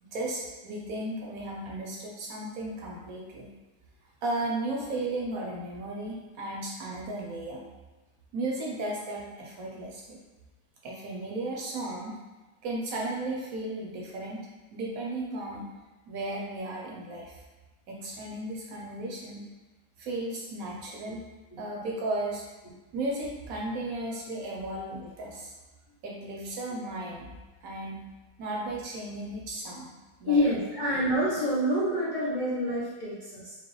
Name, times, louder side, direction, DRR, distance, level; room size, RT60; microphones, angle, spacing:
voice 1, 0.0-3.5 4.2-7.6 8.3-10.2 10.8-12.1 12.6-15.7 16.1-17.4 17.9-19.4 20.0-21.2 21.6-22.4 22.9-25.5 26.0-27.3 27.6-28.0 28.4-29.9 30.2-30.5, right 2 dB, 65° right, -2 dB, 1.0 m, -35 dB
voice 2, 30.2-33.6, equal, 60° left, -8 dB, 0.4 m, -27 dB
4.6 x 2.2 x 3.1 m, 1.2 s
omnidirectional pair, 1.8 m